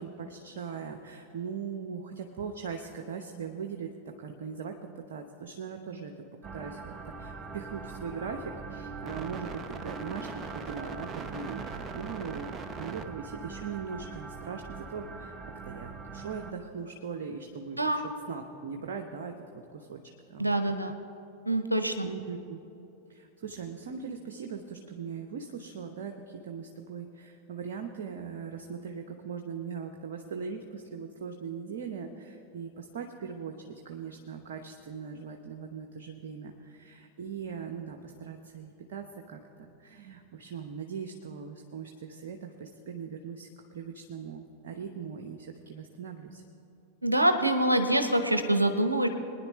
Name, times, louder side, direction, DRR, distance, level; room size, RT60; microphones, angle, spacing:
voice 1, 0.0-6.1 6.5-15.3 15.6-18.0 18.3-19.3 19.7-20.0 20.3-20.6 22.0-22.6 23.1-46.4, right 6 dB, 55° right, 3 dB, 0.9 m, -40 dB
sound 1, 6.4-16.5, right 4 dB, 25° right, 0.8 m, -41 dB
voice 2, 20.4-21.0 21.5-22.1 47.0-49.1, right 1 dB, 85° right, 7 dB, 0.8 m, -25 dB
23.0 x 10.0 x 3.2 m, 2.8 s
figure-of-eight pair, 90°, 0 cm